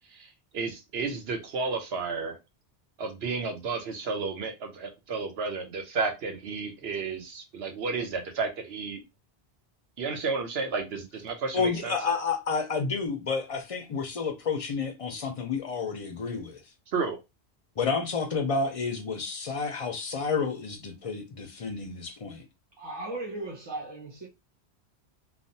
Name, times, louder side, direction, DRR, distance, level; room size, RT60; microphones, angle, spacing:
voice 1, 0.5-2.4 3.0-9.0 10.0-11.9 16.9-17.2, right 4 dB, 75° right, 1.0 m, -32 dB
voice 2, 11.5-16.6 17.8-22.5, left 4 dB, 50° left, 0.4 m, -30 dB
voice 3, 22.8-24.3, right 2 dB, 25° right, 1.0 m, -37 dB
3.2 x 2.0 x 2.7 m
omnidirectional pair, 1.1 m